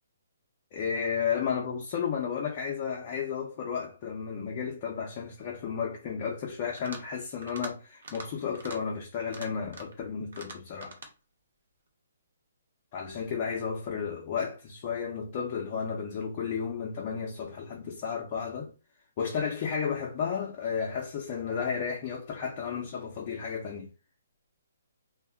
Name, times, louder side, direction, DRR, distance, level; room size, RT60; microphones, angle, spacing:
voice 1, 0.7-11.0 12.9-18.7 19.2-23.9, left 6 dB, 20° left, 0.4 m, -33 dB
sound 1, 6.6-7.1 7.4-7.7 8.0-8.3 8.5-8.8 9.2-10.0 10.3-11.1, right 3 dB, 60° right, 0.7 m, -43 dB
2.1 x 2.0 x 3.4 m
hypercardioid pair, 180°, 0 cm